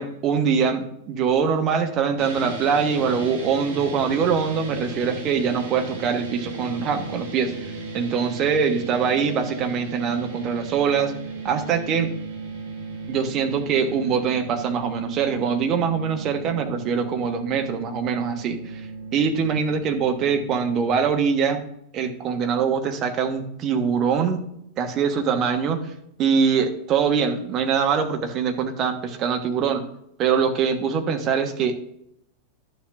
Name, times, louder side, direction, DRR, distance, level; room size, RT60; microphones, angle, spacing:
voice 1, 0.0-11.1 11.4-12.1 13.1-18.9 19.1-21.6 21.9-24.4 24.8-25.8 26.2-29.8 30.2-31.8, right 6 dB, 35° right, 5 dB, 1.1 m, -23 dB
sound 1, 2.2-20.9, right 3 dB, 60° right, 2.3 m, -35 dB
11.0 x 7.3 x 2.5 m, 0.75 s
figure-of-eight pair, 90°, 0 cm